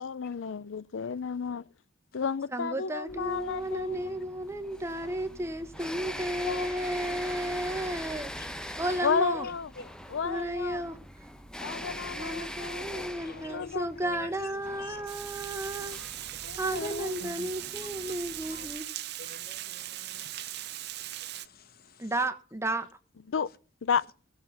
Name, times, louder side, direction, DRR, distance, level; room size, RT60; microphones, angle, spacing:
voice 1, 0.0-1.7 2.1-4.2 6.1-6.2 6.4-6.9 9.0-9.7 10.1-10.8 11.6-13.9 16.4-17.3 23.3-23.5 23.8-24.0, left 6 dB, 80° left, 0.5 m, -33 dB
voice 2, 2.5-8.3 8.8-9.5 10.2-11.0 12.1-16.0 16.6-18.9 22.0-22.9, right 1 dB, 15° right, 1.2 m, -33 dB
sound 1, 3.1-18.8, equal, 5° left, 0.9 m, -42 dB
voice 3, 8.4-8.8 9.3-10.2 11.9-12.6 12.9-15.0 16.7-16.9 17.2-17.6 18.0-18.1 18.5-18.7 19.2-22.2, left 4 dB, 50° left, 1.1 m, -50 dB
Water, 15.1-21.5, right 14 dB, 60° right, 0.6 m, -39 dB
17.0 x 7.4 x 5.7 m
head